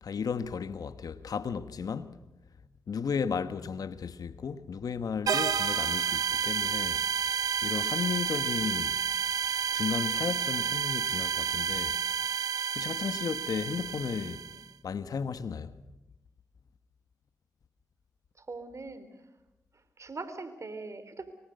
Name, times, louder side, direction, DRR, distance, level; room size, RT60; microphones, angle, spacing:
voice 1, 0.0-2.3 2.9-7.0 7.6-9.0 9.7-12.0 12.7-14.4 14.8-15.7, left 6 dB, 75° left, 1.3 m, -34 dB
sound 1, 5.3-14.6, right 7 dB, 75° right, 0.7 m, -30 dB
voice 2, 18.4-19.1 19.7-21.3, right 3 dB, 50° right, 4.0 m, -42 dB
24.5 x 24.0 x 6.8 m
cardioid pair, 45°, 6 cm